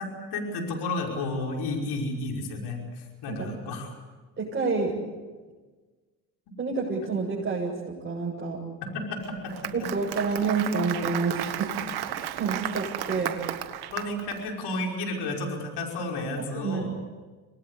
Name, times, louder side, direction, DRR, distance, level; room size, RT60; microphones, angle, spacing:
voice 1, 0.0-3.9 8.8-9.7 10.3-10.4 13.9-17.0, left 2 dB, 70° left, 1 dB, 5.6 m, -32 dB
voice 2, 4.4-5.0 6.6-8.6 9.7-13.4 16.4-16.9, right 4 dB, 25° right, -5 dB, 7.2 m, -29 dB
Applause, 9.2-14.4, right 12 dB, 65° right, 1.8 m, -34 dB
26.0 x 19.5 x 8.3 m, 1.3 s
supercardioid pair, 75°, 41 cm